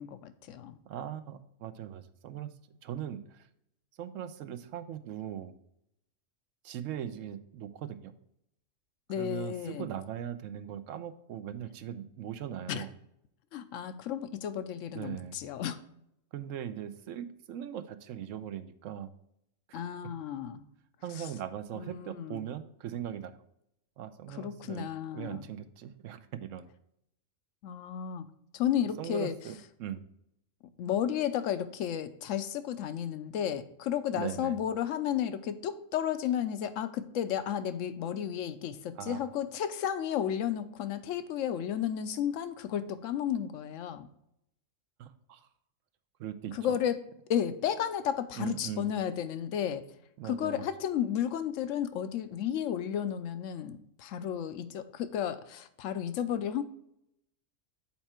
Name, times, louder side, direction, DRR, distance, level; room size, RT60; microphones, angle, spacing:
voice 1, 0.0-0.8 9.1-9.9 12.7-12.9 13.5-15.8 19.7-20.6 21.2-21.3 21.7-22.4 24.3-25.5 27.6-28.3 28.5-29.3 30.8-44.1 46.5-47.0 47.3-49.9 50.2-56.6, left 9 dB, 85° left, 11 dB, 1.0 m, -33 dB
voice 2, 0.9-2.5 2.8-3.5 4.0-5.5 6.6-8.1 9.1-12.9 14.9-15.4 16.3-19.1 19.7-19.8 21.0-23.4 24.0-24.9 25.1-26.7 29.0-30.0 34.1-34.6 39.0-39.2 45.0-45.4 46.2-46.8 48.3-48.9 50.2-50.7, right 10 dB, 85° right, 11 dB, 1.0 m, -40 dB
7.2 x 4.5 x 4.3 m, 0.79 s
omnidirectional pair, 1.3 m